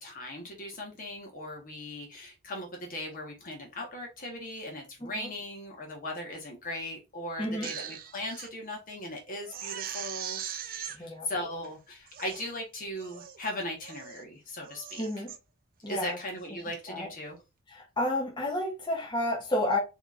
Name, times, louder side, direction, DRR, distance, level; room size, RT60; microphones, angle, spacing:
voice 1, 0.0-15.0 15.9-17.4, left 1 dB, 40° left, 1.1 m, -38 dB
voice 2, 7.4-7.7 11.0-11.3 15.0-15.3 15.8-16.2 16.9-17.1 17.7-19.8, left 1 dB, 20° left, 1.1 m, -31 dB
Crying sobbing, 7.4-8.5 8.9-9.0 9.4-11.0 11.6-11.7 12.1-12.5 13.0-13.4 13.8-14.2 14.6-15.4 15.8-16.1, right 9 dB, 40° right, 0.4 m, -40 dB
4.4 x 3.0 x 2.4 m
head